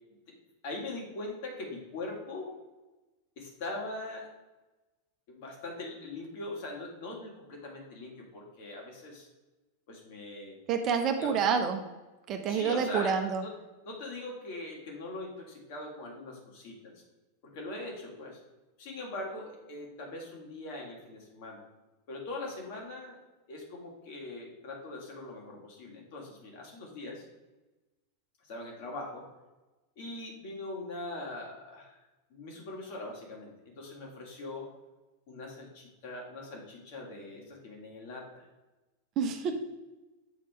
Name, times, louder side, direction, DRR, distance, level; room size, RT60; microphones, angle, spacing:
voice 1, 0.6-2.5 3.4-4.3 5.3-9.3 9.9-10.6 11.2-11.5 12.5-13.5 13.8-16.9 17.4-18.4 18.8-21.6 22.1-23.2 23.5-27.3 28.4-29.3 30.0-32.0 32.3-34.7 35.3-38.4 39.5-39.6, left 2 dB, 50° left, -1 dB, 2.1 m, -41 dB
voice 2, 10.7-11.8 12.3-13.4 39.2-39.5, right 6 dB, 35° right, 6 dB, 0.7 m, -28 dB
7.8 x 4.2 x 4.7 m, 1.1 s
figure-of-eight pair, 90°, 0 cm